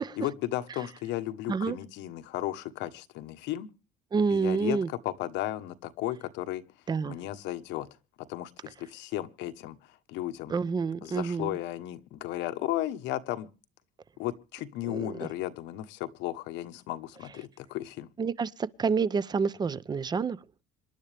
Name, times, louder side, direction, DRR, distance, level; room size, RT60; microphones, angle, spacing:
voice 1, 0.0-3.7 4.3-6.6 7.0-7.9 8.3-10.5 11.0-13.5 14.2-18.1, left 14 dB, 90° left, 1.3 m, -35 dB
voice 2, 4.1-4.9 6.9-7.2 10.5-11.6 14.9-15.1 18.2-20.4, right 5 dB, 25° right, 0.7 m, -28 dB
26.5 x 11.5 x 3.4 m
cardioid pair, 145°, 18 cm